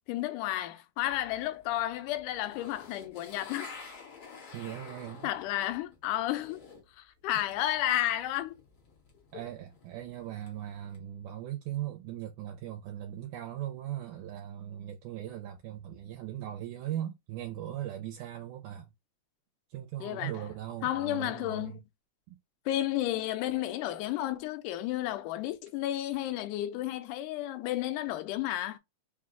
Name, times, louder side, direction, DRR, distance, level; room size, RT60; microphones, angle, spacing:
voice 1, 0.1-3.7 5.2-6.6 7.0-8.6 20.0-20.4 20.8-21.8 22.7-28.8, left 14 dB, 85° left, 2.1 m, -32 dB
sound 1, 1.0-6.9 7.2-11.0, left 4 dB, 55° left, 1.6 m, -51 dB
voice 2, 4.5-5.3 9.3-18.9 19.7-21.8 22.3-22.4, right 12 dB, 80° right, 2.0 m, -39 dB
5.0 x 2.2 x 3.6 m
omnidirectional pair, 3.6 m